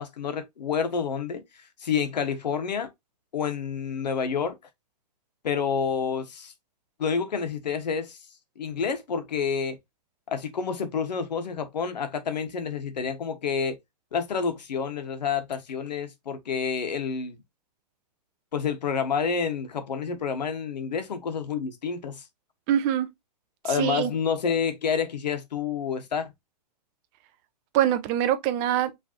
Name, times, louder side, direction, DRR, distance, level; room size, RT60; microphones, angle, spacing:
voice 1, 0.0-1.4 1.8-2.9 3.3-4.6 5.4-6.5 7.0-8.2 8.6-9.8 10.3-13.8 14.1-17.4 18.5-22.2 23.6-26.3, left 6 dB, 80° left, 1.5 m, -29 dB
voice 2, 22.7-23.1 23.6-24.1 27.7-28.9, right 11 dB, 20° right, 0.4 m, -24 dB
5.2 x 3.3 x 2.9 m
hypercardioid pair, 160°, 21 cm